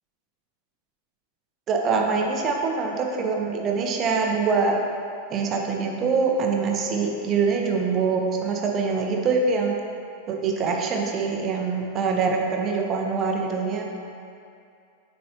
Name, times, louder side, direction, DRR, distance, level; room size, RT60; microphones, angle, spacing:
voice 1, 1.7-4.8 5.3-9.8 10.3-13.8, right 4 dB, 30° right, 1 dB, 0.8 m, -24 dB
9.3 x 4.3 x 2.9 m, 2.4 s
figure-of-eight pair, 90°, 0 cm